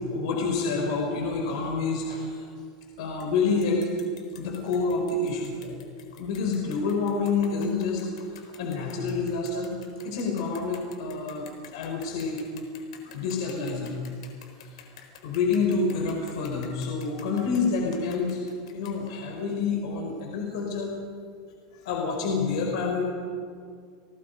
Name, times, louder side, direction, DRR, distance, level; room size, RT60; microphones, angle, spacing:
voice 1, 0.1-2.5 3.0-3.9 4.4-5.8 6.1-8.1 8.3-9.8 10.0-12.4 13.1-13.9 14.7-14.8 15.2-18.4 18.7-21.0 21.7-23.0, left 4 dB, 60° left, 0 dB, 4.5 m, -28 dB
sound 1, 3.2-3.3 3.6-19.4, left 8 dB, 90° left, 4.3 m, -50 dB
30.0 x 20.0 x 5.3 m, 2.2 s
supercardioid pair, 180°, 3 cm